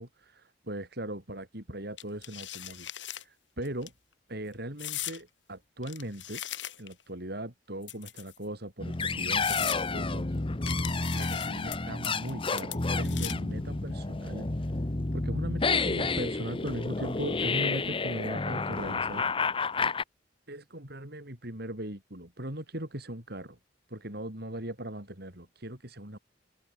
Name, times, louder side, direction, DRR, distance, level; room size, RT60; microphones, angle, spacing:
voice 1, 0.0-3.9 4.3-6.4 6.8-10.4 11.1-14.5 15.1-19.3 20.5-23.6 23.9-26.2, right 1 dB, 60° right, 6.8 m, -39 dB
sound 1, 2.0-3.2 3.6-3.9 4.8-5.2 5.8-7.0 7.8-8.4 8.9-9.0 9.4-9.8 10.7-11.8 12.0-12.3 12.6-13.5, left 13 dB, 90° left, 6.1 m, -38 dB
sound 2, 8.8-20.0, left 3 dB, 30° left, 0.9 m, -30 dB
head